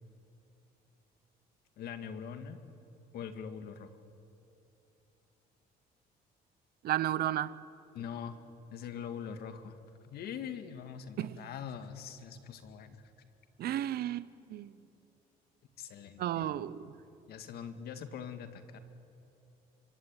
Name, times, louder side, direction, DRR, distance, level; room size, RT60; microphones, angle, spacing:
voice 1, 1.8-2.6 3.1-3.9 7.9-8.4 8.7-9.8 10.0-13.0 15.8-16.6 17.3-18.8, left 7 dB, 70° left, 2.1 m, -43 dB
voice 2, 6.8-7.6 11.2-11.4 13.6-14.7 16.2-16.8, right 12 dB, 65° right, 0.9 m, -33 dB
26.0 x 24.0 x 9.1 m
cardioid pair, 110°, 17 cm